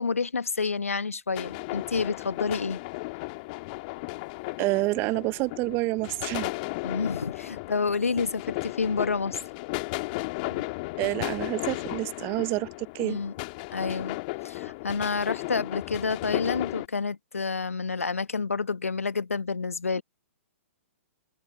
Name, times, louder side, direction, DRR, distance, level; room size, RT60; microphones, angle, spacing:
voice 1, 0.0-2.8 6.8-9.4 10.4-10.6 13.0-13.3 13.7-14.2 14.4-20.0, left 4 dB, 75° left, 1.4 m, -29 dB
sound 1, 1.4-16.9, left 26 dB, 35° left, 2.1 m, -35 dB
voice 2, 4.6-6.5 11.0-12.7 12.9-13.2, right 24 dB, 30° right, 0.9 m, -28 dB
figure-of-eight pair, 115°, 8 cm